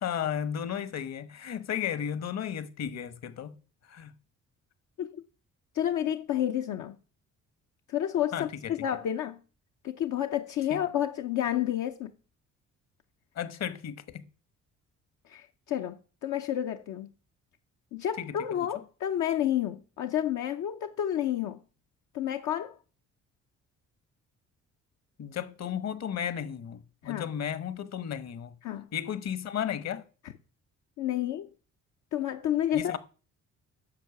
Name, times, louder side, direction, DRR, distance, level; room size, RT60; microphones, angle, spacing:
voice 1, 0.0-3.5 3.9-4.1 8.3-8.7 10.7-10.8 13.4-14.2 18.2-18.3 25.2-28.5 28.9-30.0 32.7-33.0, left 9 dB, 60° left, 1.3 m, -34 dB
voice 2, 5.7-6.9 7.9-9.4 9.8-12.1 15.3-17.1 17.9-21.6 22.1-22.8 27.0-27.3 28.6-28.9 30.2-30.3 31.0-31.5 32.1-33.0, left 11 dB, 80° left, 0.8 m, -30 dB
10.5 x 6.6 x 7.0 m
cardioid pair, 90°, 30 cm